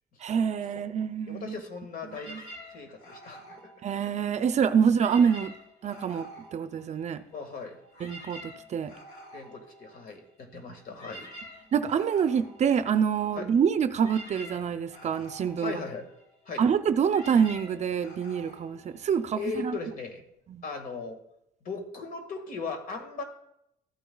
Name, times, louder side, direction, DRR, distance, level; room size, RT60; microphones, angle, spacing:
voice 1, 0.2-1.6 2.3-2.4 3.8-5.5 5.8-6.3 6.5-7.2 8.0-8.4 8.7-8.9 11.7-15.7 16.6-19.7 20.5-20.6, right 7 dB, 40° right, 11 dB, 0.5 m, -26 dB
voice 2, 1.3-2.4 2.7-3.7 4.7-4.8 7.3-7.8 9.3-11.3 13.3-13.5 15.6-16.1 16.5-16.7 19.4-20.2 20.6-21.2 21.6-23.2, left 4 dB, 55° left, 5 dB, 1.8 m, -38 dB
sound 1, 2.1-4.5 4.8-7.4 7.7-19.6, equal, 80° left, 3.0 m, -48 dB
14.0 x 9.0 x 2.3 m, 0.78 s
cardioid pair, 110°, 17 cm